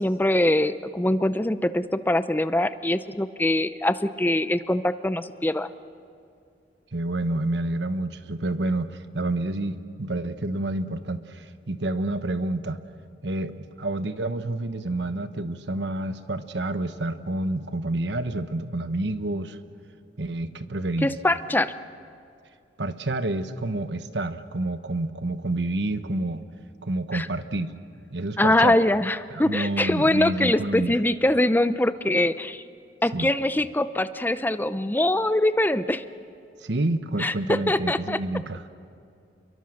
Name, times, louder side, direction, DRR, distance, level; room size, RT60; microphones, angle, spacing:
voice 1, 0.0-5.7 21.0-21.7 27.1-27.3 28.4-32.6 33.0-36.0 37.2-38.2, left 1 dB, 10° left, 13 dB, 0.6 m, -23 dB
voice 2, 6.9-12.8 13.2-19.6 20.2-21.1 22.8-26.4 26.8-27.7 28.1-28.8 29.3-31.0 33.1-33.3 36.6-38.6, right 2 dB, 75° right, 10 dB, 1.1 m, -28 dB
29.0 x 22.5 x 6.5 m, 2.5 s
head